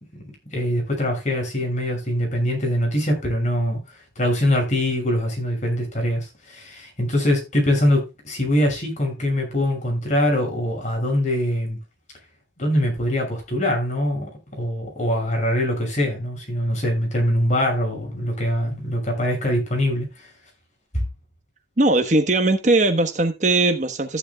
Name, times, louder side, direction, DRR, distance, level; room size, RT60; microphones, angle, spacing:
voice 1, 0.5-11.8 12.6-20.3, left 1 dB, 35° left, 6.5 m, -23 dB
voice 2, 21.8-24.2, right 2 dB, 35° right, 1.2 m, -19 dB
14.5 x 11.0 x 2.3 m
head